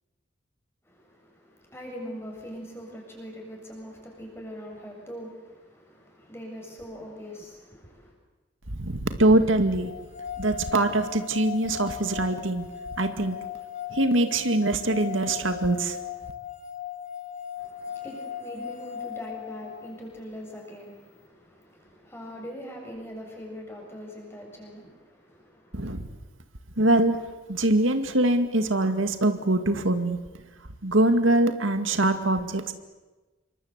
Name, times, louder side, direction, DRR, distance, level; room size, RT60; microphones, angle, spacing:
voice 1, 0.8-8.1 17.6-25.9, equal, 15° left, 0 dB, 7.7 m, -42 dB
voice 2, 8.7-9.9 10.4-12.7 13.0-13.4 13.9-16.0 25.7-26.1 26.8-27.2 27.5-30.2 30.8-32.7, right 1 dB, 90° right, 8 dB, 2.2 m, -23 dB
sound 1, 9.8-20.0, left 9 dB, 40° left, 2.6 m, -38 dB
28.0 x 24.0 x 8.2 m, 1.2 s
head